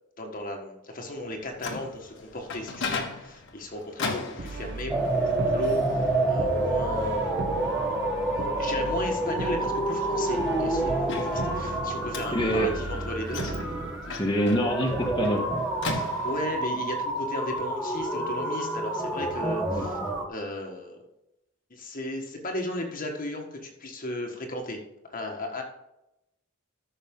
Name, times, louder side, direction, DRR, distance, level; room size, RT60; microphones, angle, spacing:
voice 1, 0.2-7.3 7.8-8.0 8.3-13.6 15.9-20.0 20.3-21.0 21.7-24.8 25.1-25.6, left 1 dB, 40° left, 2 dB, 1.6 m, -35 dB
Microwave oven, 1.2-16.7, left 3 dB, 60° left, 1.6 m, -39 dB
Brass instrument, 4.4-14.2, right 3 dB, 55° right, 0.9 m, -37 dB
sound 1, 4.9-20.3, right 2 dB, ahead, 1.3 m, -28 dB
voice 2, 12.3-12.7 14.1-15.6 19.7-19.8, equal, 20° left, -2 dB, 1.5 m, -25 dB
14.0 x 6.4 x 3.8 m, 0.87 s
head